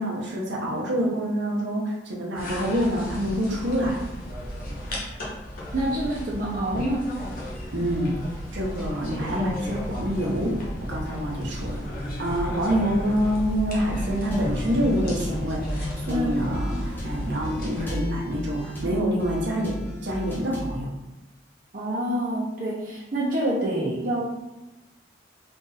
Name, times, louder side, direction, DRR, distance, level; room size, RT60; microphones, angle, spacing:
voice 1, 0.0-4.0 7.7-8.2 8.5-11.9 12.2-20.9, equal, 75° right, -3 dB, 1.0 m, -27 dB
sound 1, 2.3-17.8, equal, 50° left, 0.9 m, -33 dB
voice 2, 5.7-7.1 16.1-16.4 21.7-24.3, right 1 dB, 45° right, -6 dB, 0.8 m, -27 dB
sound 2, 13.9-20.8, equal, 10° left, 0.8 m, -35 dB
3.7 x 2.6 x 4.0 m, 1.0 s
head